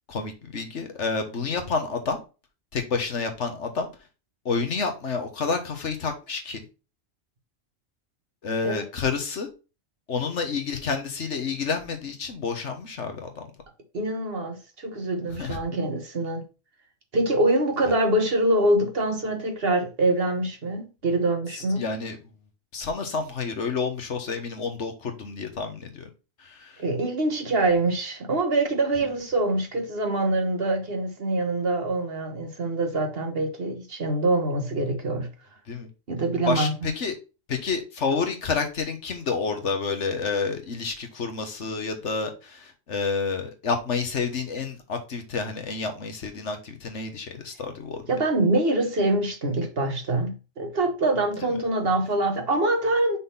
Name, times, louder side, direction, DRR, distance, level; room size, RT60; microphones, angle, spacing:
voice 1, 0.1-2.2 2.7-3.9 4.4-6.6 8.4-9.5 10.1-13.5 15.4-15.6 21.5-22.2 22.7-26.1 26.4-26.8 35.7-35.9 36.5-37.1 37.5-48.0 51.4-51.5, left 4 dB, 65° left, 1.6 m, -29 dB
voice 2, 13.9-16.4 17.1-21.9 26.8-35.3 36.1-36.9 48.1-53.2, right 2 dB, 50° right, 1.4 m, -25 dB
6.1 x 4.0 x 5.4 m
omnidirectional pair, 1.3 m